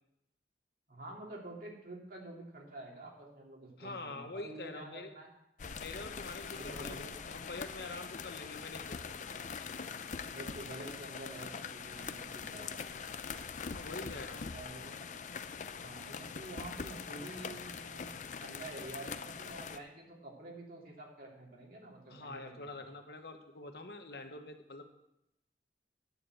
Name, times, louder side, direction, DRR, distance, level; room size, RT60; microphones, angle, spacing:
voice 1, 0.9-5.3 6.6-7.2 10.3-12.8 14.5-15.2 15.8-22.7, right 2 dB, 55° right, -1 dB, 2.6 m, -48 dB
voice 2, 3.8-5.1 5.7-9.1 13.7-14.4 22.1-24.8, left 2 dB, 65° left, 5 dB, 1.2 m, -45 dB
sound 1, 5.6-19.8, left 5 dB, 45° left, 0.5 m, -43 dB
9.7 x 6.9 x 7.9 m, 0.83 s
head